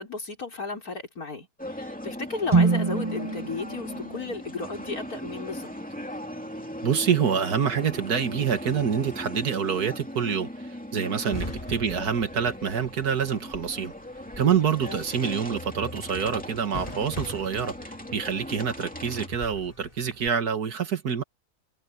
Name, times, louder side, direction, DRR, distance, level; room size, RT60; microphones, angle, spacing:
voice 1, 0.0-5.7 11.2-11.5 14.8-15.0, left 3 dB, 65° left, 5.2 m, -35 dB
sound 1, 1.6-19.3, equal, 5° left, 2.5 m, -39 dB
sound 2, 2.5-6.5, right 4 dB, 20° right, 1.2 m, -28 dB
voice 2, 6.8-13.9 14.4-21.2, right 7 dB, 75° right, 2.1 m, -26 dB
sound 3, 11.3-20.3, left 1 dB, 20° left, 3.1 m, -42 dB
omnidirectional pair, 1.7 m